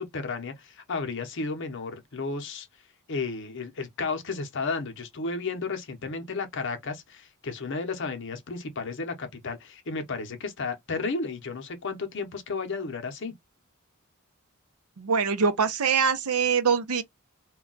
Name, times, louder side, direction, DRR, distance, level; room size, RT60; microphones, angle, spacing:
voice 1, 0.0-2.7 3.1-13.3, left 4 dB, 55° left, 0.7 m, -33 dB
voice 2, 15.0-17.0, right 6 dB, 90° right, 0.6 m, -23 dB
2.3 x 2.2 x 3.7 m
head